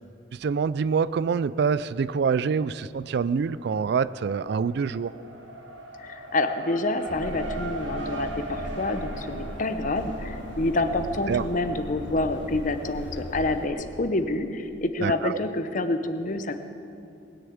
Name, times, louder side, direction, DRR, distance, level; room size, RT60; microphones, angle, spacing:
voice 1, 0.3-5.1 11.3-11.4 15.0-15.3, right 6 dB, 55° right, 17 dB, 0.3 m, -25 dB
Race car auto racing, 1.8-2.5 2.9-14.2, right 2 dB, 75° right, 1.9 m, -41 dB
voice 2, 6.0-16.6, left 2 dB, 40° left, 9 dB, 0.8 m, -28 dB
sound 1, 7.1-13.7, equal, 65° left, 1.7 m, -38 dB
20.0 x 6.8 x 8.6 m, 2.6 s
head